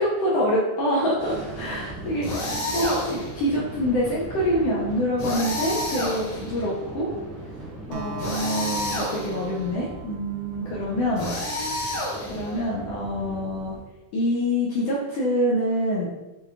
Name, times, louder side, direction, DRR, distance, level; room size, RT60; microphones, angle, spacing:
voice 1, 0.0-7.1 7.9-11.3 12.3-13.8 14.1-16.1, equal, 80° left, -5 dB, 1.4 m, -26 dB
sound 1, 1.2-13.8, right 1 dB, 45° right, 1.3 m, -39 dB
sound 2, 2.2-3.4 5.2-6.6 8.2-9.5 11.2-12.6, left 1 dB, 60° left, 1.5 m, -29 dB
Acoustic guitar, 7.9-12.4, right 5 dB, 80° right, 1.6 m, -41 dB
6.5 x 2.3 x 3.4 m, 1.1 s
omnidirectional pair, 3.6 m